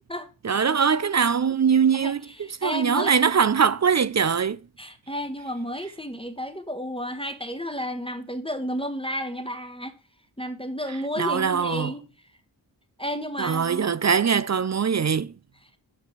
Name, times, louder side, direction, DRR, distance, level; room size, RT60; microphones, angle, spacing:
voice 1, 0.4-2.2 2.6-4.6 11.2-11.9 13.4-15.3, right 6 dB, 40° right, 0.5 m, -22 dB
voice 2, 1.9-3.1 4.8-9.9 10.4-12.0 13.0-13.9, equal, 10° left, 1.3 m, -32 dB
7.4 x 5.8 x 4.6 m
cardioid pair, 40°, 45 cm